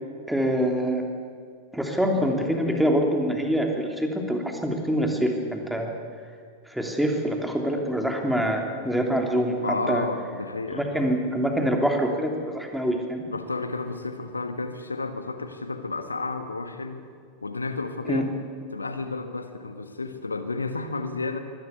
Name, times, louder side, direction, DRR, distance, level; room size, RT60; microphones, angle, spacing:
voice 1, 0.3-1.0 1.7-5.9 6.7-9.6 9.9-10.0 10.7-13.2 18.1-18.2, equal, ahead, 2 dB, 3.1 m, -25 dB
voice 2, 9.6-10.9 13.3-17.1 17.4-18.3 18.7-21.4, left 3 dB, 80° left, 9 dB, 1.5 m, -31 dB
23.5 x 18.5 x 8.3 m, 2.2 s
figure-of-eight pair, 90°, 0 cm